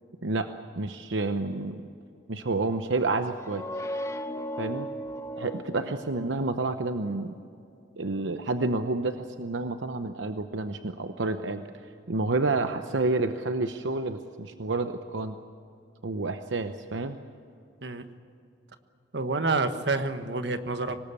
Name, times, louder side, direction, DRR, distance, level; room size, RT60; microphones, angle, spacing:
voice 1, 0.7-1.8 2.3-3.6 4.6-4.9 5.4-7.3 8.0-11.6 12.1-15.4 16.0-17.2, right 3 dB, 85° right, 8 dB, 0.9 m, -29 dB
sound 1, 3.3-6.9, equal, 15° left, 1.1 m, -37 dB
voice 2, 19.1-21.0, right 3 dB, 70° right, 9 dB, 1.4 m, -28 dB
25.0 x 19.5 x 8.4 m, 2.5 s
head